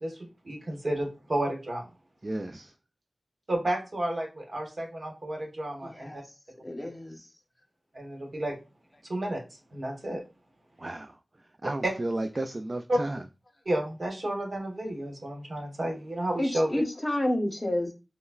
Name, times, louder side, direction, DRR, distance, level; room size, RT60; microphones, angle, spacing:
voice 1, 0.0-1.8 3.5-6.2 6.8-6.9 7.9-8.5 9.1-9.4 9.7-10.2 11.8-11.9 12.9-13.0 13.6-16.8, right 1 dB, 60° right, 1.3 m, -31 dB
voice 2, 2.2-2.7 10.8-11.1 11.6-13.2, right 2 dB, 40° right, 0.3 m, -33 dB
voice 3, 5.8-6.2 6.6-7.2 16.4-17.9, left 1 dB, 35° left, 0.7 m, -29 dB
5.2 x 2.1 x 2.4 m
wide cardioid pair, 55°, 0 cm